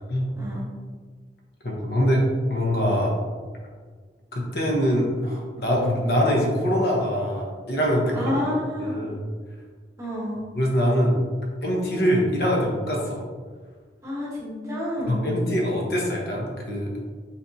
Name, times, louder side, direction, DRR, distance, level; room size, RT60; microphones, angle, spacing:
voice 1, 1.6-2.2 2.5-3.1 4.3-8.3 8.8-9.2 10.5-11.2 11.6-13.2 15.1-16.9, equal, 60° left, -2 dB, 0.8 m, -23 dB
voice 2, 8.1-9.0 10.0-10.4 14.0-15.2, left 1 dB, 15° right, -6 dB, 1.0 m, -29 dB
4.1 x 3.5 x 2.6 m, 1.5 s
head